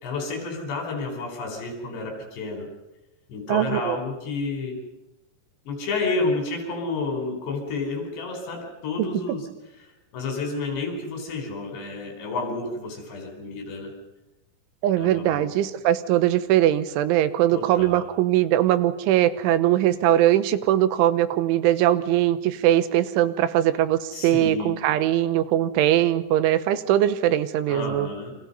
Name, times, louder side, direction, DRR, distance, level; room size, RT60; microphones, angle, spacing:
voice 1, 0.0-2.7 3.3-4.8 5.7-9.5 9.8-9.9 10.1-13.9 15.0-15.5 17.5-18.0 24.1-24.7 27.7-28.3, left 3 dB, 65° left, 4 dB, 6.5 m, -30 dB
voice 2, 3.5-4.0 9.0-9.4 14.8-28.1, right 12 dB, 90° right, 13 dB, 3.5 m, -21 dB
29.0 x 25.0 x 5.5 m, 0.99 s
omnidirectional pair, 5.3 m